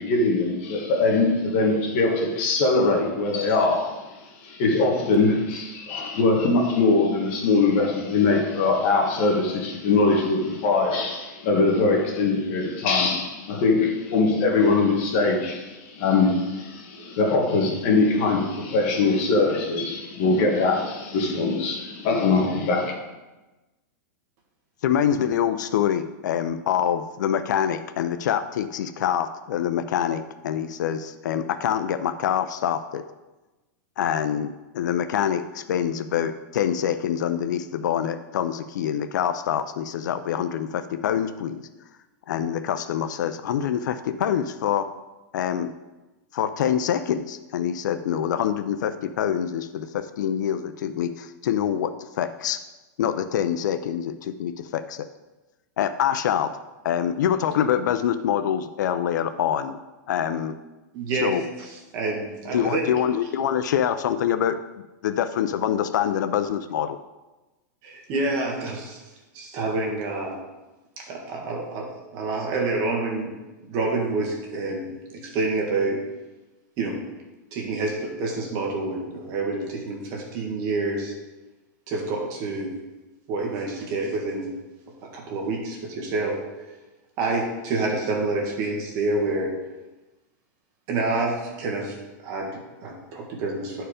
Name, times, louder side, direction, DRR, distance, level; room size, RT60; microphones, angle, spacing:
voice 1, 0.0-4.1 4.4-22.9, left 3 dB, 40° left, 1 dB, 1.6 m, -22 dB
voice 2, 24.8-33.0 34.0-41.6 42.3-44.9 45.3-45.7 46.3-52.6 53.0-55.1 55.8-56.5 56.8-59.8 60.1-60.5 61.2-61.4 62.5-64.6 65.0-67.0, left 9 dB, 70° left, 11 dB, 0.5 m, -25 dB
voice 3, 60.9-62.9 67.8-69.0 69.3-70.4 71.0-73.3 73.7-76.0 76.8-77.0 77.5-81.1 81.9-82.8 83.3-84.5 85.0-86.4 87.2-89.6 90.9-92.0 92.2-93.8, right 3 dB, 35° right, 0 dB, 1.8 m, -28 dB
10.0 x 4.6 x 5.0 m, 1.1 s
supercardioid pair, 165°, 10 cm